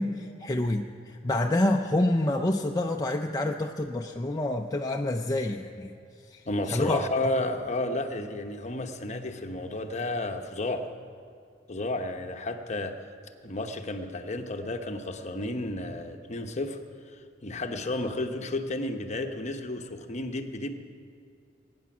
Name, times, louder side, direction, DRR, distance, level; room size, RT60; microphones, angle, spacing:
voice 1, 0.0-5.9 6.3-6.4 6.7-7.0, left 1 dB, 20° left, 2 dB, 0.5 m, -27 dB
voice 2, 6.5-10.9 11.7-13.0 13.4-16.8 17.1-20.7, left 2 dB, 40° left, 6 dB, 1.0 m, -32 dB
21.0 x 9.5 x 6.1 m, 2.4 s
head